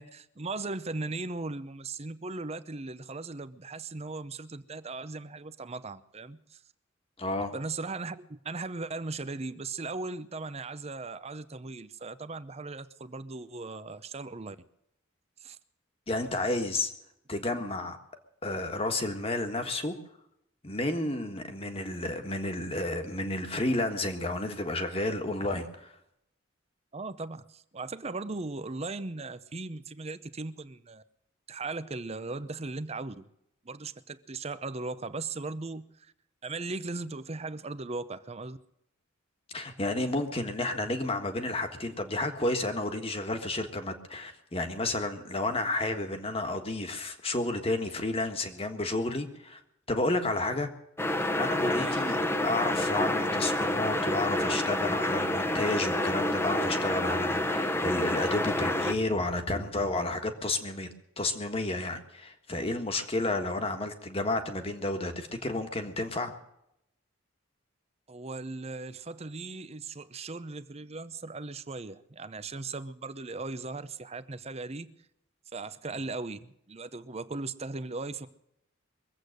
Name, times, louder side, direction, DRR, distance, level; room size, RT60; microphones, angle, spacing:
voice 1, 0.0-6.6 7.5-14.6 15.4-15.6 26.9-31.0 31.5-33.3 33.6-36.1 36.4-38.6 51.8-51.9 68.1-74.9 75.5-78.3, right 3 dB, 30° right, 14 dB, 0.7 m, -38 dB
voice 2, 7.2-7.5 16.1-16.9 17.3-18.0 18.4-19.9 20.6-25.9 39.5-49.6 49.9-50.7 51.4-60.9 61.2-66.4, left 2 dB, 30° left, 6 dB, 1.6 m, -31 dB
sound 1, 51.0-58.9, left 1 dB, 10° left, 0.9 m, -28 dB
23.0 x 8.2 x 6.6 m, 0.79 s
head